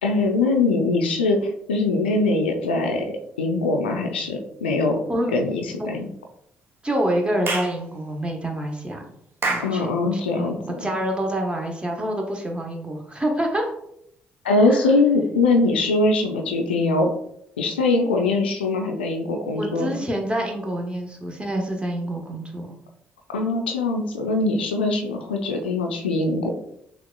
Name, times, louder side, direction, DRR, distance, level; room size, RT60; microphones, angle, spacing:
voice 1, 0.0-5.0 5.3-6.1 9.6-10.6 14.4-17.1 17.6-20.0 23.3-26.5, left 3 dB, 85° left, 3 dB, 0.4 m, -22 dB
voice 2, 6.8-9.0 9.5-9.9 10.3-13.7 14.7-14.8 19.6-22.7, right 1 dB, 20° right, 2 dB, 1.0 m, -27 dB
Clapping / Chirp tweet, 7.5-7.8 9.4-9.8, right 3 dB, 45° right, 0.7 m, -25 dB
6.3 x 2.4 x 2.2 m, 0.73 s
figure-of-eight pair, 45°, 5 cm